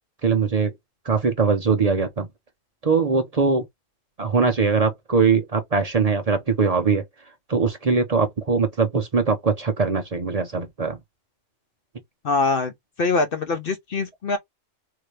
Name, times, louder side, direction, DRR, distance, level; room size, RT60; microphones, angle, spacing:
voice 1, 0.2-0.7 1.0-2.3 2.8-3.7 4.2-7.0 7.5-11.0, right 5 dB, 45° right, 0.5 m, -21 dB
voice 2, 12.2-12.7 13.0-14.4, left 3 dB, 50° left, 0.7 m, -23 dB
3.8 x 2.7 x 3.1 m
omnidirectional pair, 1.4 m